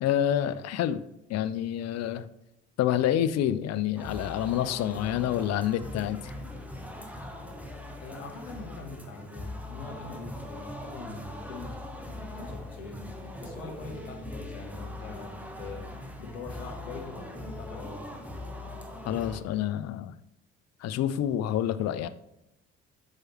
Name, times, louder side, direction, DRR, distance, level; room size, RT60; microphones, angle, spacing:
voice 1, 0.0-1.0 1.3-2.3 2.8-6.3 19.0-20.1 20.8-22.1, left 11 dB, 45° left, 12 dB, 0.6 m, -28 dB
sound 1, 4.0-19.4, left 1 dB, 5° right, 1.3 m, -41 dB
voice 2, 8.0-11.7 12.0-13.1 13.4-18.1, left 3 dB, 80° left, 0 dB, 1.3 m, -43 dB
12.5 x 4.8 x 3.0 m, 0.86 s
figure-of-eight pair, 50°, 38 cm